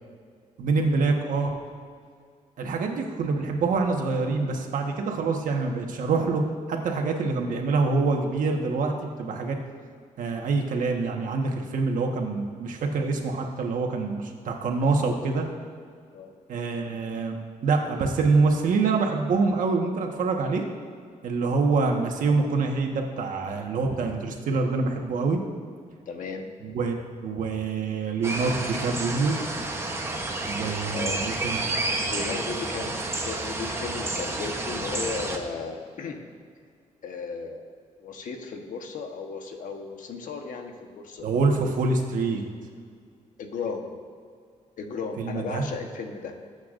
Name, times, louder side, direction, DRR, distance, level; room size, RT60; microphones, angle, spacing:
voice 1, 0.6-1.5 2.6-6.4 6.7-8.9 9.2-9.6 10.2-15.4 16.5-20.6 21.2-25.4 26.6-27.0 27.2-29.4 30.5-31.7 32.0-32.1 41.2-42.4 45.2-45.7, right 4 dB, 80° right, 2 dB, 1.4 m, -25 dB
voice 2, 26.1-26.5 30.9-31.3 32.1-36.2 37.0-37.7 38.0-41.3 43.4-43.9 44.8-46.3, left 4 dB, 75° left, 4 dB, 1.2 m, -35 dB
sound 1, 28.2-35.4, right 2 dB, 20° right, 1.0 m, -30 dB
19.5 x 8.2 x 2.6 m, 2.1 s
wide cardioid pair, 150°, 14 cm